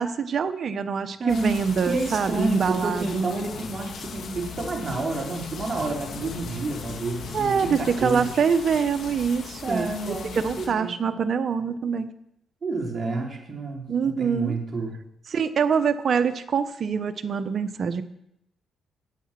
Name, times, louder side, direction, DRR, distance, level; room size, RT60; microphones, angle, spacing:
voice 1, 0.0-3.3 7.3-10.2 10.4-12.1 13.9-14.6 15.3-18.0, right 6 dB, 50° right, 9 dB, 1.2 m, -25 dB
voice 2, 1.2-1.6 1.9-8.3 9.6-11.1 12.6-14.9, right 3 dB, 35° right, -1 dB, 4.2 m, -29 dB
sound 1, 1.3-10.7, left 6 dB, 65° left, 2.3 m, -38 dB
16.0 x 9.1 x 6.1 m, 0.79 s
cardioid pair, 90°, 0 cm